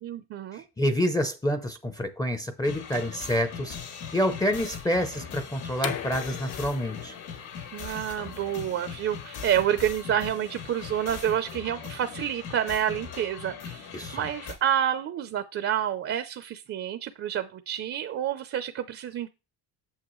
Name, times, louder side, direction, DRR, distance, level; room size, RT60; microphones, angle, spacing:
voice 1, 0.0-0.6 7.7-13.9 14.1-19.3, right 10 dB, 35° right, 0.6 m, -29 dB
voice 2, 0.5-3.8 4.1-7.2 13.9-14.2, equal, 10° left, 0.6 m, -28 dB
sound 1, 2.6-14.5, left 7 dB, 80° left, 3.4 m, -40 dB
sound 2, 5.8-11.4, left 10 dB, 55° left, 1.0 m, -41 dB
8.7 x 7.2 x 3.1 m
cardioid pair, 170°, 40 cm